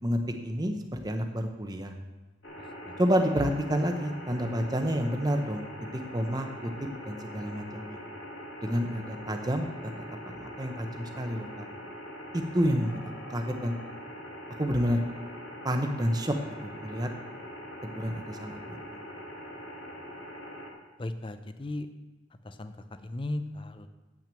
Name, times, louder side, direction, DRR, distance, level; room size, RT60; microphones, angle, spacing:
voice 1, 0.0-1.9 3.0-5.6 5.9-6.7 7.1-8.0 8.6-9.9 10.3-11.7 12.3-13.0 13.3-13.7 14.6-15.0 15.6-16.4 16.6-17.1 17.8-18.8, equal, 20° right, 5 dB, 0.8 m, -29 dB
sound 1, 2.4-20.7, equal, 75° left, 2.5 m, -43 dB
voice 2, 21.0-21.9 22.5-22.7 23.0-23.9, left 2 dB, 25° left, 10 dB, 0.5 m, -36 dB
8.6 x 6.0 x 7.6 m, 1.2 s
head